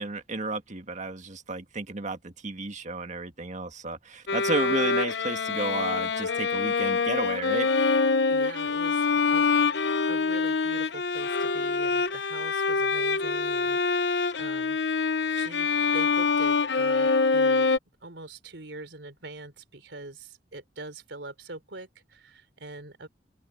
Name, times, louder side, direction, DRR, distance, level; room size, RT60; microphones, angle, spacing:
voice 1, 0.0-7.7, right 3 dB, 45° right, 1.9 m, -32 dB
Bowed string instrument, 4.3-17.8, left 4 dB, 70° left, 0.9 m, -25 dB
voice 2, 8.3-9.7 10.1-14.8 15.3-17.7 18.0-23.1, right 2 dB, 85° right, 3.6 m, -43 dB
open air
head